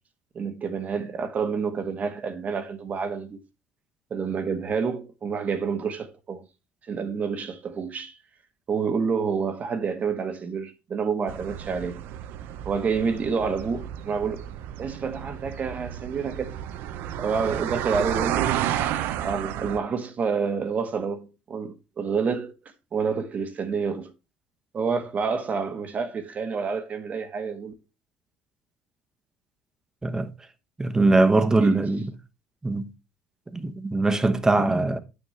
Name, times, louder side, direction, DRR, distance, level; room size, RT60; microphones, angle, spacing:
voice 1, 0.3-3.4 4.1-6.4 6.9-8.2 8.7-12.0 12.6-14.4 14.8-16.6 17.2-18.5 19.2-22.5 22.9-24.1 24.7-27.7 31.6-31.8, right 5 dB, 40° right, 1.2 m, -28 dB
sound 1, 11.3-19.8, right 11 dB, 65° right, 0.6 m, -31 dB
voice 2, 30.8-32.1 32.6-32.9 33.5-35.0, right 2 dB, 15° right, 1.0 m, -21 dB
8.9 x 6.6 x 3.2 m
supercardioid pair, 80°, 4 cm